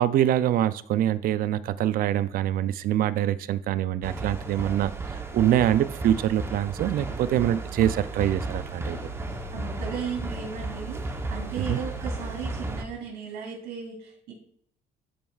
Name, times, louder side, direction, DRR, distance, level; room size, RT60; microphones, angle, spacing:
voice 1, 0.0-9.1 11.6-11.8, right 11 dB, 60° right, 15 dB, 0.4 m, -25 dB
sound 1, 4.0-12.8, right 2 dB, 15° right, 0.8 m, -34 dB
voice 2, 9.5-14.3, right 7 dB, 90° right, 1 dB, 2.9 m, -36 dB
12.5 x 4.4 x 2.3 m, 0.64 s
cardioid pair, 110°, 17 cm